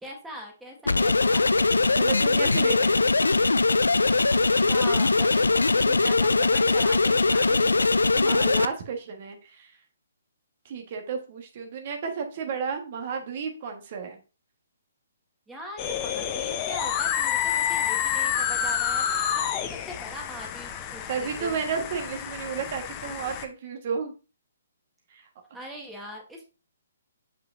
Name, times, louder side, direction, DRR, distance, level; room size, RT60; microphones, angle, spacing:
voice 1, 0.0-1.6 4.3-7.8 15.5-21.5 25.5-26.4, equal, 5° right, 1 dB, 1.6 m, -41 dB
sound 1, 0.9-8.7, left 3 dB, 80° left, 0.3 m, -21 dB
voice 2, 1.9-3.2 8.2-9.7 10.6-14.2 21.1-24.1 25.1-25.3, right 5 dB, 45° right, 5 dB, 1.4 m, -32 dB
sound 2, 15.8-23.4, left 9 dB, 25° left, 0.7 m, -29 dB
7.2 x 5.4 x 2.6 m, 0.33 s
figure-of-eight pair, 135°, 0 cm